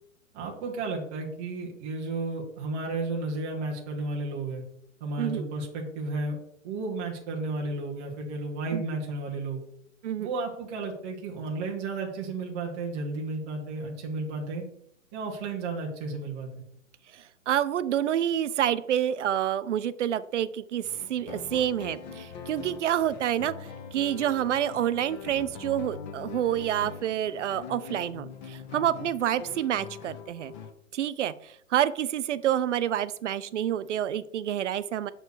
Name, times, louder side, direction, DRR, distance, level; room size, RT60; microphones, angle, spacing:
voice 1, 0.3-4.6 5.0-6.4 6.6-9.6 10.2-14.7 15.1-16.5, right 3 dB, 10° right, -2 dB, 0.4 m, -33 dB
voice 2, 17.1-30.5 30.9-35.1, right 11 dB, 60° right, 15 dB, 0.5 m, -28 dB
sound 1, 20.8-30.7, left 6 dB, 35° left, 0.9 m, -42 dB
6.7 x 4.6 x 4.5 m, 0.72 s
hypercardioid pair, 140°, 41 cm